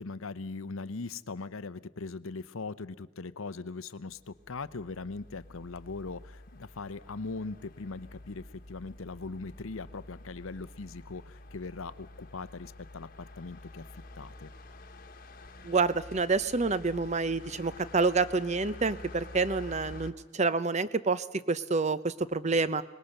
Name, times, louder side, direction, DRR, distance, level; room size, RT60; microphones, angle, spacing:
voice 1, 0.0-13.8 14.2-14.5, left 3 dB, 70° left, 14 dB, 0.8 m, -40 dB
sound 1, 4.1-20.1, left 2 dB, 40° left, 1.4 m, -49 dB
voice 2, 15.6-22.8, right 4 dB, 30° right, 15 dB, 0.7 m, -28 dB
24.0 x 20.5 x 6.6 m, 1.1 s
head